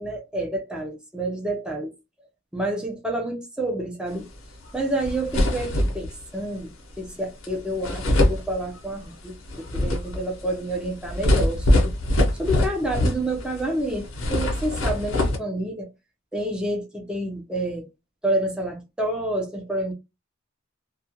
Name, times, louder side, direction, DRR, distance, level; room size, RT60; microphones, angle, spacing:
voice 1, 0.0-1.9 2.5-4.3 4.7-6.7 7.0-12.0 12.4-15.9 16.3-17.9 18.2-19.9, right 1 dB, 5° right, 0.6 m, -29 dB
sound 1, 4.7-4.8 5.0-6.2 7.4-7.5 7.8-9.0 9.4-13.6 13.9-15.4, left 1 dB, 90° left, 0.8 m, -23 dB
2.3 x 2.2 x 2.8 m
head